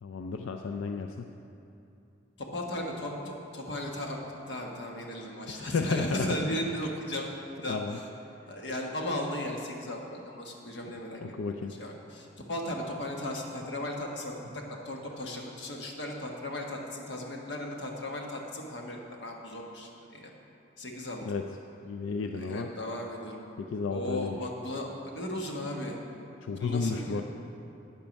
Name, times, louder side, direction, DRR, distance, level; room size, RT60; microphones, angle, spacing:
voice 1, 0.0-1.3 5.5-6.3 7.7-8.0 11.2-11.7 21.3-21.4 21.8-22.7 23.6-24.4 26.4-27.3, left 4 dB, 90° left, 5 dB, 0.4 m, -32 dB
voice 2, 2.4-7.3 7.6-8.1 8.5-11.2 11.5-20.3 20.8-21.2 22.3-23.5 23.9-26.0 26.6-27.2, left 1 dB, 60° left, 0 dB, 1.3 m, -36 dB
9.1 x 8.9 x 5.2 m, 2.8 s
head